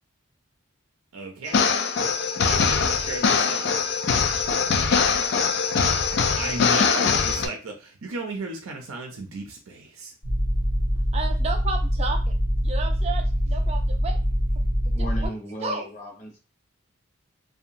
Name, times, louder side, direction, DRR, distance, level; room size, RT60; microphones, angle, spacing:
voice 1, 1.1-1.6 2.5-3.7 6.4-10.1, right 2 dB, 85° right, 2 dB, 0.5 m, -34 dB
sound 1, 1.5-7.5, left 5 dB, 55° left, 0.3 m, -22 dB
sound 2, 10.2-15.3, equal, 80° left, 1.0 m, -24 dB
voice 2, 11.1-12.3 12.6-14.2 14.8-15.3 15.6-15.9, right 3 dB, 30° right, 3 dB, 0.4 m, -32 dB
voice 3, 14.9-16.4, equal, 35° left, 0 dB, 0.8 m, -36 dB
2.7 x 2.2 x 2.5 m, 0.32 s
head